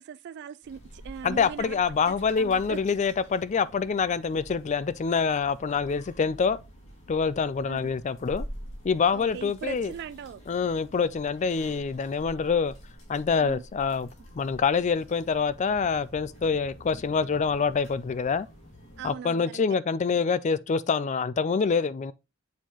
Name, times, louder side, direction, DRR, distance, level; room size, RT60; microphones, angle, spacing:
voice 1, 0.0-1.8 2.4-2.8 7.7-7.9 9.1-10.4 13.4-13.6 19.0-19.6, right 7 dB, 55° right, 0.3 m, -39 dB
sound 1, 0.6-19.1, equal, 70° left, 2.8 m, -47 dB
voice 2, 1.2-6.6 7.1-8.4 8.8-9.9 10.5-12.7 13.1-14.1 14.4-18.5 19.0-22.1, left 5 dB, 35° left, 0.4 m, -26 dB
7.2 x 4.4 x 2.9 m
head